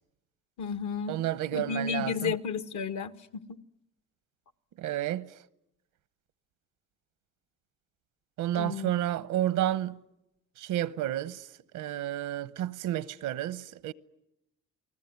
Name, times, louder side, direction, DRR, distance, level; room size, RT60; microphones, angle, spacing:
voice 1, 0.6-1.2 1.5-3.6 8.5-8.9, left 6 dB, 75° left, 1.4 m, -33 dB
voice 2, 1.1-2.3 4.8-5.3 8.4-10.0 10.6-11.5 11.7-13.9, right 12 dB, 85° right, 1.0 m, -31 dB
30.0 x 20.0 x 9.4 m
cardioid pair, 90°, 30 cm